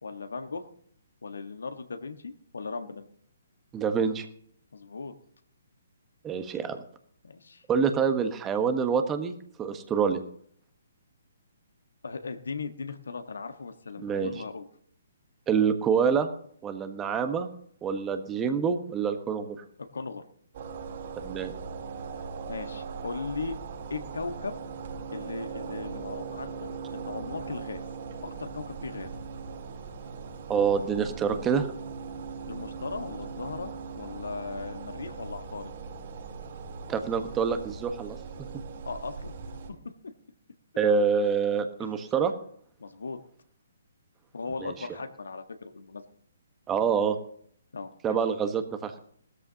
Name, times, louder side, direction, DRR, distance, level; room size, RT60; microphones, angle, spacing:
voice 1, 0.0-0.6 1.2-3.0 4.7-5.1 7.2-7.6 12.0-14.7 19.9-20.2 22.5-23.6 23.9-24.6 25.1-27.8 28.2-29.1 32.5-35.7 38.8-39.3 41.8-41.9 42.8-43.2 44.3-46.0 47.7-48.2, left 4 dB, 70° left, 7 dB, 1.5 m, -37 dB
voice 2, 3.7-4.2 6.2-6.8 7.7-9.3 9.6-10.2 14.0-14.3 15.5-16.3 16.6-17.5 17.8-19.6 21.2-21.5 30.5-31.7 36.9-38.6 40.8-42.3 44.6-44.7 46.7-47.2 48.0-49.0, right 6 dB, 15° right, 8 dB, 1.3 m, -26 dB
sound 1, 20.5-39.7, right 5 dB, 45° right, 4.8 m, -40 dB
19.0 x 13.5 x 2.9 m, 0.62 s
figure-of-eight pair, 130°, 0 cm